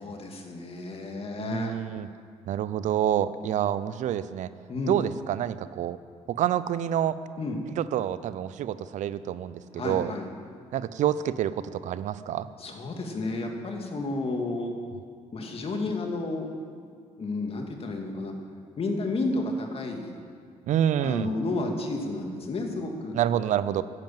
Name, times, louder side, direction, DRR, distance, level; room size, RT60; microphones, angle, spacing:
voice 1, 0.0-1.8 4.7-5.0 7.4-7.6 9.8-10.3 12.6-14.7 15.3-16.5 17.2-18.3 18.8-20.2 21.0-23.2, left 2 dB, 50° left, 3 dB, 2.3 m, -31 dB
voice 2, 1.4-2.1 2.5-4.5 4.9-6.0 6.3-7.2 7.8-10.1 10.7-12.5 20.7-21.3 23.1-23.8, right 10 dB, 70° right, 15 dB, 0.6 m, -27 dB
11.0 x 10.5 x 7.6 m, 2.1 s
supercardioid pair, 65°, 13 cm